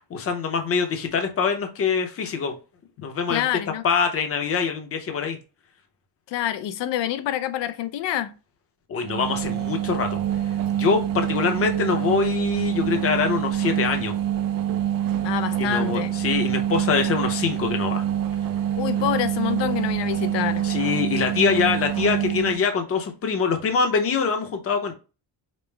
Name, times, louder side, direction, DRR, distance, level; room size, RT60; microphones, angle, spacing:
voice 1, 0.0-2.5 3.0-3.5 3.8-5.4 8.9-10.2 10.7-14.1 15.6-18.0 20.6-24.9, left 5 dB, 30° left, 0.7 m, -24 dB
voice 2, 3.3-3.8 6.3-8.3 15.2-16.1 18.8-20.7, left 12 dB, 70° left, 0.6 m, -27 dB
sound 1, 9.0-22.6, right 11 dB, 50° right, 0.5 m, -26 dB
5.2 x 2.0 x 3.2 m
cardioid pair, 180°, 45 cm